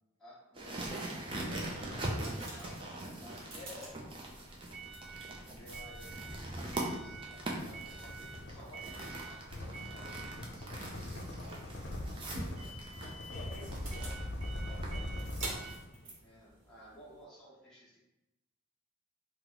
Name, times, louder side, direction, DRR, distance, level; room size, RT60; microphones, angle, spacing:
voice 1, 0.2-3.4 5.3-13.9 16.2-18.0, equal, ahead, -10 dB, 0.9 m, -56 dB
sound 1, 0.5-15.8, right 1 dB, 25° right, 0.4 m, -43 dB
sound 2, 1.1-17.2, right 2 dB, 80° right, 0.9 m, -48 dB
sound 3, 1.3-2.6 3.8-16.0, left 1 dB, 60° left, 0.4 m, -44 dB
voice 2, 3.5-4.0 13.3-14.2 14.5-15.3, left 2 dB, 40° left, -6 dB, 0.9 m, -50 dB
2.9 x 2.0 x 3.9 m, 0.96 s
head